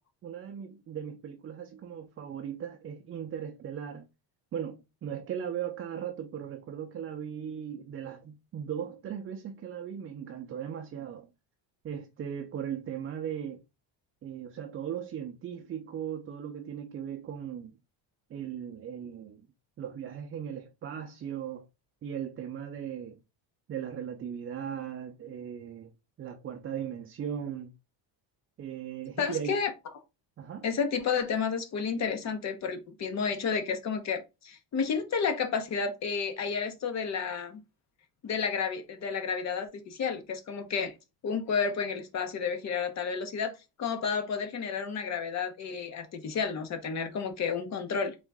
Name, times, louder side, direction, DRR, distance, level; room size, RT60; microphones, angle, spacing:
voice 1, 0.2-4.1 4.5-11.3 11.8-13.6 14.2-17.8 18.3-19.5 19.8-21.7 22.0-23.2 23.7-25.9 26.2-27.7 28.6-29.6 30.4-30.7, right 9 dB, 30° right, 0.6 m, -38 dB
voice 2, 29.2-29.7 30.6-37.6 38.2-40.9 41.2-48.2, left 6 dB, 40° left, 1.1 m, -31 dB
4.1 x 3.6 x 3.5 m
cardioid pair, 160°, 44 cm